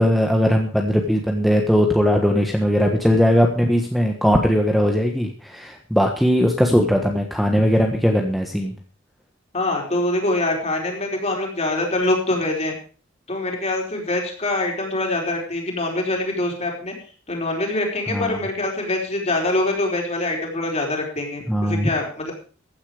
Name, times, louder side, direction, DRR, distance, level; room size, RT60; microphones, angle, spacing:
voice 1, 0.0-8.7 18.1-18.4 21.5-21.9, equal, ahead, 1 dB, 1.4 m, -19 dB
voice 2, 9.5-12.7 13.3-16.9 17.3-22.3, left 2 dB, 35° left, 0 dB, 4.6 m, -24 dB
15.0 x 10.0 x 5.0 m, 0.40 s
head